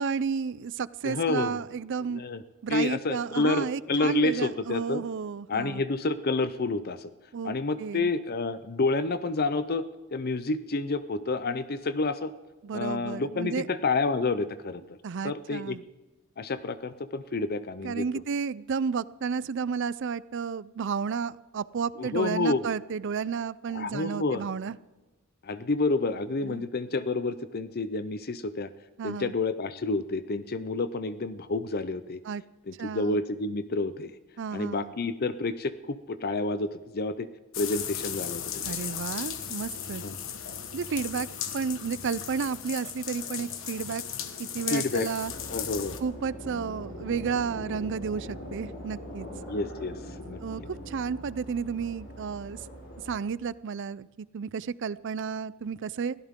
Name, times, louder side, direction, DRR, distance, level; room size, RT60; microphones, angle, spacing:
voice 1, 0.0-2.2 2.6-5.8 7.3-8.1 12.6-13.7 15.0-15.8 17.8-24.8 26.4-26.7 29.0-29.3 32.3-32.4 32.8-33.2 34.4-34.9 38.6-40.0 40.7-41.3 41.5-44.0 44.4-45.3 46.0-49.3 50.4-52.7 53.1-56.2, right 6 dB, 60° right, 19 dB, 0.4 m, -32 dB
voice 2, 1.0-1.6 2.1-2.4 2.7-5.0 5.5-7.1 7.4-12.3 12.7-14.8 15.2-15.8 16.4-18.1 22.0-22.6 23.7-24.4 25.4-28.7 29.0-32.2 32.7-34.1 34.5-37.3 37.6-38.4 38.8-39.0 40.0-40.2 44.7-45.1 45.5-46.0 49.5-50.7, left 3 dB, 45° left, 13 dB, 0.6 m, -29 dB
sound 1, 37.5-46.0, left 9 dB, 65° left, 1.3 m, -36 dB
sound 2, 45.2-53.2, equal, 80° left, 7.0 m, -42 dB
21.5 x 16.0 x 3.7 m, 1.1 s
head